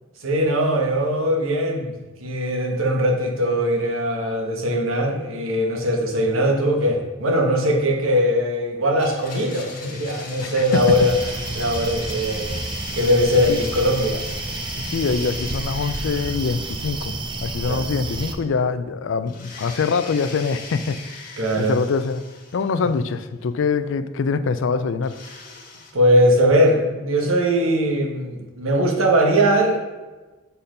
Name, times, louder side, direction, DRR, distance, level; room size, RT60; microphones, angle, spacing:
voice 1, 0.2-1.9 2.2-11.1 11.5-12.5 12.9-14.2 17.7-17.9 21.4-21.8 25.9-29.8, equal, 80° right, 1 dB, 1.2 m, -20 dB
Domestic sounds home sounds, 9.0-18.1 18.4-18.5 19.3-23.2 25.0-25.9, left 3 dB, 40° left, 1.4 m, -39 dB
voice 2, 10.4-10.8 13.5-13.6 14.8-22.2 22.5-25.2, left 5 dB, 65° left, 12 dB, 0.4 m, -24 dB
sound 1, 10.7-18.3, right 2 dB, 25° right, 0.5 m, -30 dB
6.8 x 4.3 x 5.1 m, 1.2 s
head